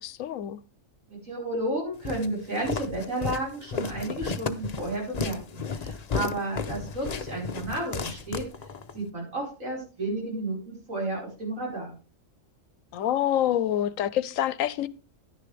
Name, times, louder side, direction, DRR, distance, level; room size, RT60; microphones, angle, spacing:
voice 1, 0.0-0.6 12.9-14.9, left 11 dB, 85° left, 1.1 m, -26 dB
voice 2, 1.1-8.4 8.9-12.0, right 2 dB, 80° right, 5.5 m, -32 dB
Walk footsteps, 2.0-9.0, left 5 dB, 40° left, 0.7 m, -33 dB
11.0 x 10.0 x 3.3 m
omnidirectional pair, 1.4 m